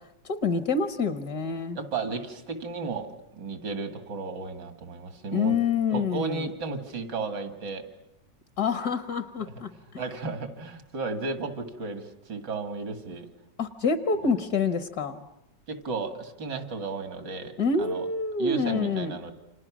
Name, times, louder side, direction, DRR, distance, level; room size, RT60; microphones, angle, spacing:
voice 1, 0.2-1.8 5.3-6.5 8.6-10.0 13.6-15.2 17.6-19.2, left 4 dB, 60° left, 10 dB, 1.6 m, -27 dB
voice 2, 1.7-5.6 5.9-7.9 10.0-13.3 15.7-18.1 18.4-19.3, right 4 dB, 80° right, 8 dB, 2.7 m, -34 dB
29.5 x 26.5 x 6.1 m, 0.85 s
omnidirectional pair, 1.9 m